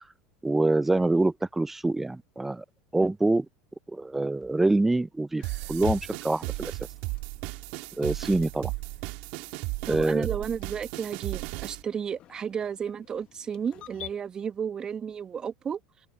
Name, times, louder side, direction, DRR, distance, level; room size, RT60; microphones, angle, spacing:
voice 1, 0.4-2.6 2.9-3.5 3.9-5.4 5.7-6.7 8.0-8.7 9.9-10.3, right 2 dB, 10° right, 0.5 m, -25 dB
sound 1, 5.4-14.1, left 14 dB, 45° left, 1.4 m, -45 dB
sound 2, 5.4-11.8, right 27 dB, 65° right, 2.3 m, -35 dB
voice 2, 9.8-15.8, right 7 dB, 30° right, 1.4 m, -33 dB
open air
hypercardioid pair, 85°, 2 cm